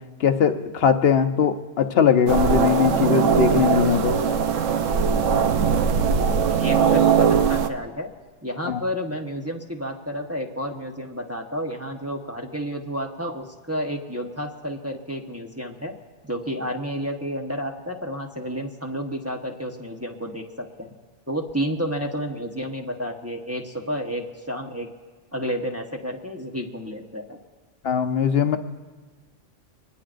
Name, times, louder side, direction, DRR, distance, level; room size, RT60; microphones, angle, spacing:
voice 1, 0.2-4.2 8.7-8.8 27.8-28.6, left 7 dB, 55° left, 8 dB, 0.9 m, -20 dB
sound 1, 2.3-7.7, right 6 dB, 85° right, 1.1 m, -20 dB
voice 2, 6.5-8.1 8.4-15.9 16.2-20.9 21.3-24.9 25.3-27.4, equal, 15° right, 0 dB, 0.9 m, -31 dB
24.5 x 20.0 x 2.5 m, 1.3 s
omnidirectional pair, 1.3 m